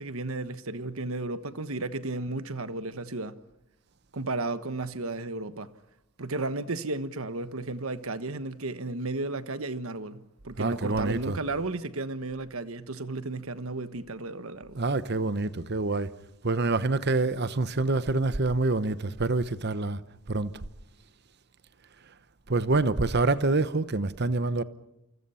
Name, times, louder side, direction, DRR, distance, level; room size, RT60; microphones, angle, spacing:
voice 1, 0.0-3.4 4.1-5.7 6.2-14.8, right 2 dB, 80° right, 1.3 m, -33 dB
voice 2, 10.6-11.4 14.8-16.1 16.4-20.0 20.3-20.5 22.5-24.6, right 3 dB, 50° right, 1.0 m, -26 dB
28.5 x 25.0 x 5.7 m
head